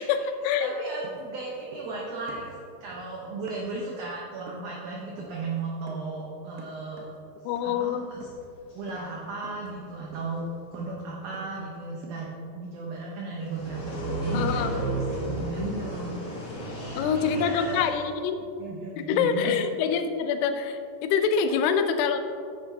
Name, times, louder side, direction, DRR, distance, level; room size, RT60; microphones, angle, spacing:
voice 1, 0.0-0.7 7.4-8.0 14.3-14.7 17.0-18.4 19.0-22.2, left 7 dB, 85° left, 8 dB, 2.7 m, -25 dB
voice 2, 0.6-2.5 2.8-7.1 7.6-8.2 8.7-12.3 12.5-16.2 16.8-18.0 18.6-19.6, right 3 dB, 70° right, -4 dB, 1.9 m, -35 dB
sound 1, 1.0-2.0 2.3-3.9 4.5-4.8 5.2-5.4 5.9-6.2 6.6-7.2 7.6-7.9 8.2-8.6 8.9-9.2 9.4-11.7 12.0-12.4, right 3 dB, 85° right, 3.1 m, -48 dB
sound 2, 13.4-17.9, right 1 dB, 50° left, 1.3 m, -32 dB
10.0 x 9.8 x 2.7 m, 2.4 s
omnidirectional pair, 4.6 m